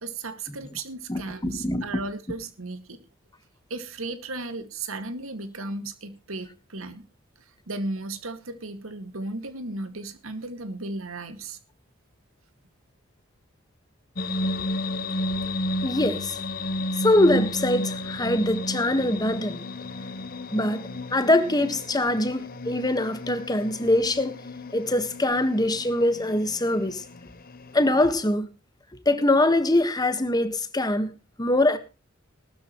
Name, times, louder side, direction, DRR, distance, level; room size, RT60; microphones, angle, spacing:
voice 1, 0.0-3.0 3.7-7.1 7.7-11.6, right 2 dB, 90° right, 2.1 m, -35 dB
voice 2, 1.1-1.8 15.8-16.4 17.0-19.6 20.5-20.8 21.1-24.4 24.7-27.0 27.7-28.5 29.0-31.8, left 1 dB, 20° left, 1.5 m, -23 dB
sound 1, 14.2-28.2, left 1 dB, 45° left, 1.0 m, -33 dB
19.5 x 12.5 x 3.1 m
head